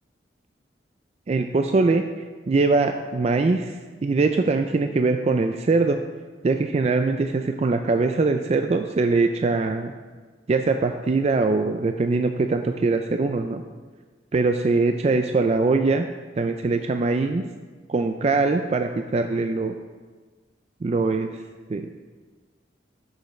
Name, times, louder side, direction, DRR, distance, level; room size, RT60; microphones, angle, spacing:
voice 1, 1.3-2.0 2.5-3.8 4.0-6.0 6.4-9.9 10.5-13.6 14.3-16.1 16.4-17.4 17.9-19.8 20.8-21.3 21.7-22.0, right 3 dB, 35° right, 6 dB, 0.3 m, -22 dB
13.0 x 6.5 x 3.2 m, 1.4 s
head